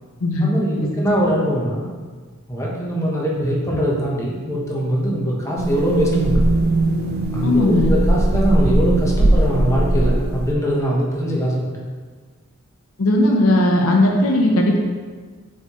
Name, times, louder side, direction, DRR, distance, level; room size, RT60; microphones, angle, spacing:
voice 1, 0.4-1.9 2.5-6.5 7.3-11.8, equal, 15° left, -4 dB, 1.1 m, -22 dB
sound 1, 5.6-10.5, right 1 dB, 50° right, 0.5 m, -19 dB
voice 2, 7.4-7.9 13.0-14.8, left 1 dB, 75° left, 1 dB, 0.8 m, -17 dB
7.2 x 4.4 x 3.1 m, 1.5 s
head